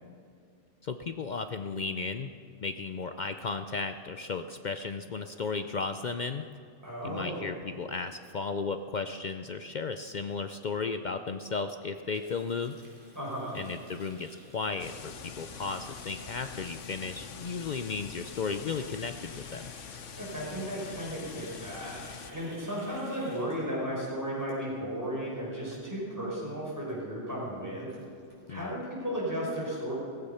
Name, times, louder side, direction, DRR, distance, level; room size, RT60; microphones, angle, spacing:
voice 1, 0.8-2.3 2.6-6.5 7.0-12.8 13.5-19.7 28.5-28.7, left 4 dB, 55° left, 9 dB, 0.5 m, -35 dB
voice 2, 6.8-7.5 13.2-13.6 20.2-27.9 28.5-29.9, equal, 15° right, -5 dB, 5.4 m, -35 dB
Water tap faucet, 12.0-25.0 25.3-25.6 25.9-26.2 26.5-26.6 26.8-26.9 27.3-27.4 27.6-28.6, right 1 dB, 45° right, 4.4 m, -55 dB
sound 1, 14.8-22.3, left 7 dB, 90° left, 1.3 m, -45 dB
17.0 x 15.0 x 5.7 m, 2.3 s
omnidirectional pair, 1.2 m